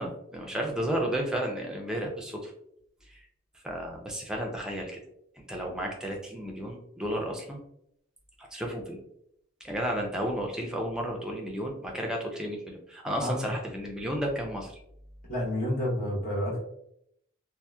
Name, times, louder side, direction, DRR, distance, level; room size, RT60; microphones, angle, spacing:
voice 1, 0.0-2.5 3.1-3.2 3.6-5.0 5.4-7.6 8.4-9.0 9.6-14.8, equal, 5° right, 0 dB, 0.4 m, -33 dB
voice 2, 13.2-13.5 15.3-16.6, left 1 dB, 40° left, -5 dB, 0.9 m, -29 dB
2.7 x 2.0 x 2.2 m, 0.73 s
head